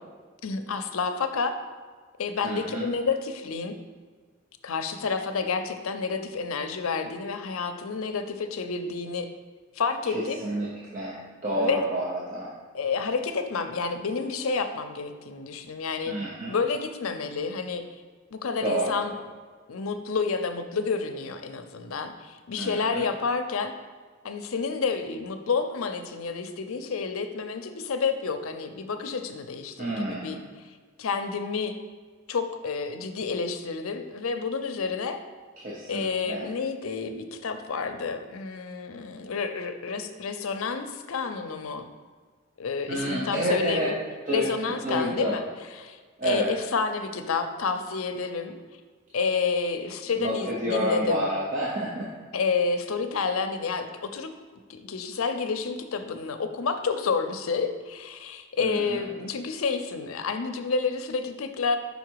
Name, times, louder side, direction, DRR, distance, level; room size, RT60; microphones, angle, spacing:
voice 1, 0.4-1.5 2.2-3.7 4.6-9.3 9.8-10.4 11.6-11.8 12.7-16.2 16.5-17.8 18.3-19.1 19.7-23.7 24.2-30.4 31.0-31.8 32.3-35.2 35.9-41.9 42.6-43.9 44.3-45.4 45.8-48.6 49.1-51.2 52.3-54.3 54.7-61.8, left 5 dB, 70° left, 7 dB, 0.5 m, -29 dB
voice 2, 2.4-2.9 10.0-10.7 10.9-12.5 16.1-16.6 18.6-19.0 22.6-23.1 29.8-30.5 35.6-36.4 42.9-43.9 44.3-45.4 46.2-46.5 50.2-52.1 58.6-59.0, equal, 35° right, -5 dB, 0.8 m, -29 dB
5.3 x 4.8 x 4.6 m, 1.5 s
head